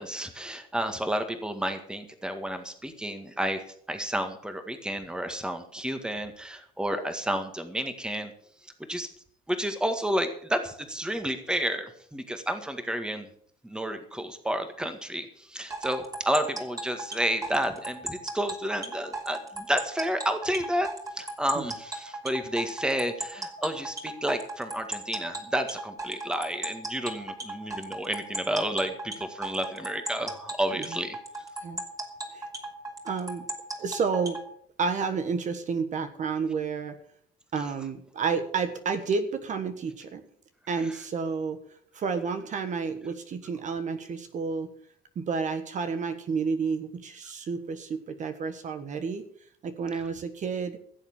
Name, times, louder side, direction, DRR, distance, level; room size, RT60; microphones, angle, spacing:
voice 1, 0.0-3.6 3.9-8.3 8.6-9.1 9.5-13.3 13.6-20.9 21.1-31.2 40.8-40.9, right 1 dB, 5° right, 7 dB, 1.8 m, -31 dB
sound 1, 15.7-34.4, right 2 dB, 20° right, 3.2 m, -36 dB
voice 2, 33.0-33.5 33.8-34.4 34.8-37.0 37.5-40.2 40.7-41.6 41.9-44.7 45.1-49.2 49.6-50.8, right 5 dB, 45° right, 9 dB, 1.5 m, -30 dB
16.0 x 7.4 x 7.2 m, 0.62 s
cardioid pair, 110°, 17 cm